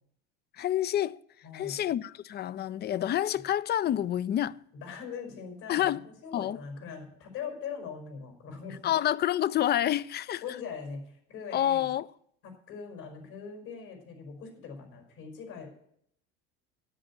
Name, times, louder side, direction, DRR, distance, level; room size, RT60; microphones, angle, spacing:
voice 1, 0.6-1.2 1.5-4.6 5.7-6.0 6.3-6.6 8.8-10.4 11.5-12.1, left 11 dB, 35° left, 0.4 m, -28 dB
voice 2, 1.4-1.9 4.7-8.9 10.4-11.9 12.4-15.9, left 6 dB, 70° left, 5.1 m, -41 dB
10.0 x 8.7 x 7.3 m
supercardioid pair, 95°, 32 cm